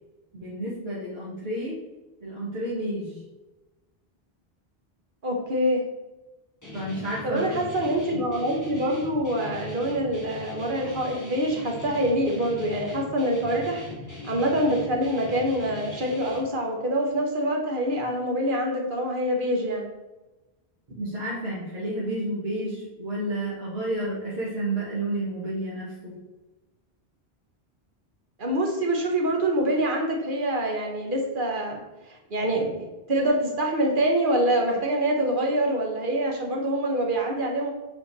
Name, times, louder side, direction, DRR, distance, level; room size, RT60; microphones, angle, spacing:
voice 1, 0.3-1.8 2.2-3.2 6.7-7.7 8.1-8.2 21.0-26.1, right 1 dB, 85° right, -9 dB, 1.9 m, -31 dB
voice 2, 5.2-5.8 7.2-13.8 14.2-19.9 28.4-31.8 32.1-32.7 33.1-37.7, right 1 dB, 55° right, 0 dB, 1.3 m, -25 dB
Guitar, 6.6-16.4, left 2 dB, 15° left, 2.0 m, -40 dB
5.5 x 4.5 x 4.1 m, 1.1 s
omnidirectional pair, 1.0 m